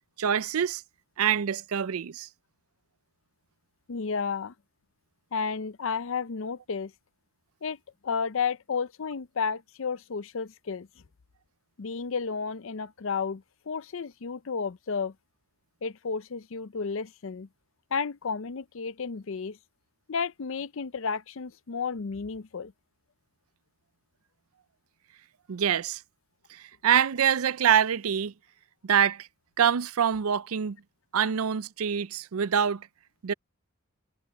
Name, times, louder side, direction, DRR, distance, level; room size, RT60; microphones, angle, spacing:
voice 1, 0.2-0.8 1.2-2.3 25.5-26.0 26.5-28.3 28.8-29.3 29.6-30.8 31.1-32.8 33.2-33.3, right 8 dB, 80° right, 0.5 m, -25 dB
voice 2, 3.9-4.5 5.3-6.9 7.6-7.8 8.0-10.9 11.8-15.1 15.8-17.5 17.9-19.6 20.1-22.7, left 5 dB, 65° left, 0.5 m, -32 dB
head